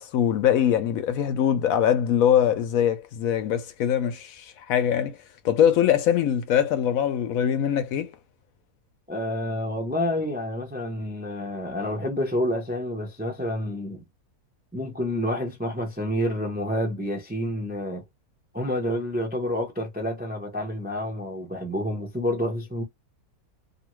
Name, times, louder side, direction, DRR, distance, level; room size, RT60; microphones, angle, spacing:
voice 1, 0.0-5.2 5.4-8.1, left 9 dB, 70° left, 0.9 m, -22 dB
voice 2, 9.1-14.0 14.7-18.0 18.5-22.8, left 1 dB, 10° right, 0.4 m, -28 dB
2.7 x 2.5 x 3.0 m
omnidirectional pair, 1.6 m